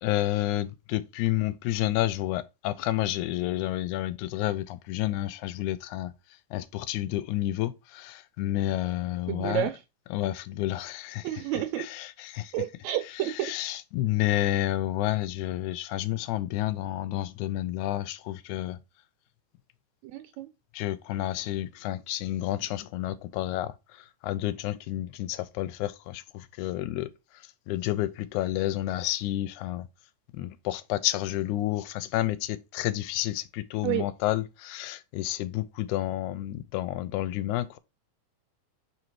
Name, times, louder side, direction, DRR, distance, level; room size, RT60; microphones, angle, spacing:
voice 1, 0.0-6.1 6.5-9.7 10.1-11.4 11.8-12.5 13.1-18.8 20.7-29.9 30.3-37.8, left 15 dB, 90° left, 2.0 m, -30 dB
voice 2, 9.3-9.8 11.2-11.9 12.5-13.5 20.0-20.5 33.8-34.1, right 13 dB, 80° right, 1.8 m, -30 dB
5.6 x 3.9 x 4.6 m
omnidirectional pair, 3.4 m